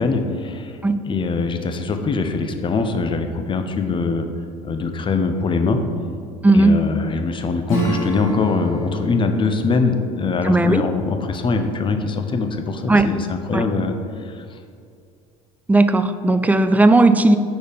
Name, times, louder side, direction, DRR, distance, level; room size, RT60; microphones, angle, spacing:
voice 1, 0.0-0.8 1.0-4.3 4.6-5.8 6.5-14.6, left 4 dB, 30° left, 7 dB, 0.6 m, -22 dB
voice 2, 6.4-6.8 10.4-10.9 12.9-13.1 13.5-13.7 15.7-17.4, right 2 dB, 10° right, 10 dB, 0.3 m, -15 dB
Acoustic guitar / Strum, 7.7-12.0, equal, 85° left, 1.5 m, -30 dB
5.0 x 4.2 x 5.1 m, 2.2 s
hypercardioid pair, 65°, 17 cm